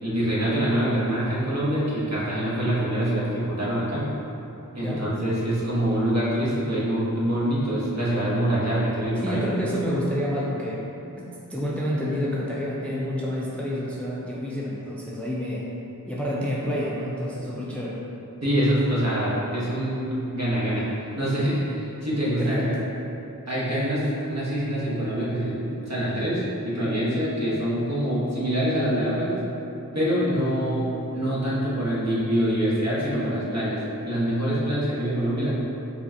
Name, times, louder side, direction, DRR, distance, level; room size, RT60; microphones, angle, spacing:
voice 1, 0.0-4.0 4.7-9.4 18.4-20.8 21.2-22.8 23.5-29.4 29.9-33.8 34.0-35.5, right 1 dB, 50° right, -9 dB, 1.2 m, -25 dB
voice 2, 9.2-10.8 11.1-15.7 16.0-18.0 22.4-22.8, equal, 5° left, -5 dB, 0.5 m, -28 dB
5.4 x 2.4 x 2.7 m, 2.9 s
wide cardioid pair, 45°, 35 cm